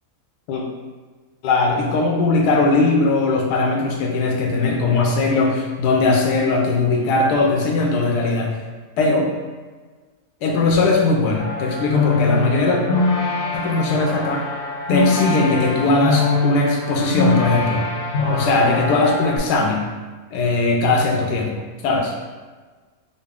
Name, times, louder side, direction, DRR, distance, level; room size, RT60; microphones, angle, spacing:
voice 1, 1.4-8.5 9.0-9.3 10.4-12.8 13.5-14.5 14.9-17.8 18.3-19.9 20.3-21.5 21.8-22.1, left 3 dB, 90° left, 0 dB, 1.2 m, -19 dB
sound 1, 11.4-19.4, left 3 dB, 50° left, 0.7 m, -22 dB
4.1 x 2.1 x 3.5 m, 1.4 s
omnidirectional pair, 1.7 m